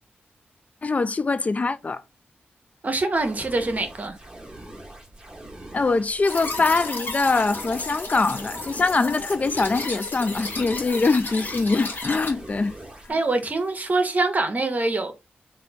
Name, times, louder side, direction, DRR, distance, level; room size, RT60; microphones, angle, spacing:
voice 1, 0.8-2.0 5.7-12.8 13.1-13.2, left 3 dB, 35° left, 0.3 m, -23 dB
voice 2, 2.8-4.2 13.1-15.1, right 2 dB, 40° right, 0.8 m, -24 dB
sound 1, 3.1-13.1, right 1 dB, 15° right, 1.1 m, -43 dB
sound 2, 6.2-12.3, left 2 dB, 55° left, 1.1 m, -33 dB
3.1 x 2.6 x 3.2 m
cardioid pair, 55°, 4 cm